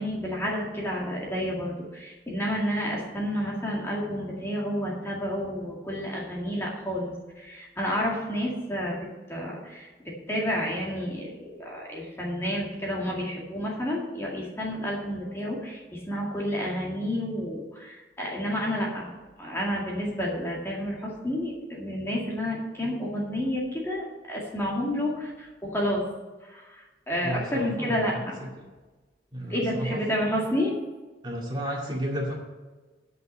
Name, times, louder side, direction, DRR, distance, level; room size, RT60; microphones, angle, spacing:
voice 1, 0.0-19.1 19.4-26.0 26.4-28.4 29.5-30.7, equal, 15° left, -3 dB, 2.0 m, -30 dB
voice 2, 27.2-28.7 29.3-30.0 31.2-32.3, equal, 25° right, -2 dB, 2.2 m, -32 dB
10.0 x 5.7 x 8.4 m, 1.2 s
head